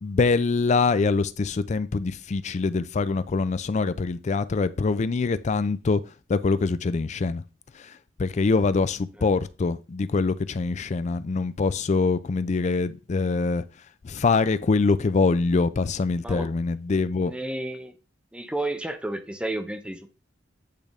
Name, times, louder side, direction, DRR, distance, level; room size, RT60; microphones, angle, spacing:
voice 1, 0.0-6.0 6.3-7.4 7.7-7.9 8.2-13.6 14.0-17.3, left 4 dB, 40° left, 0.4 m, -24 dB
voice 2, 17.2-17.9 18.3-20.2, right 1 dB, 5° right, 0.6 m, -32 dB
8.4 x 3.4 x 3.6 m
head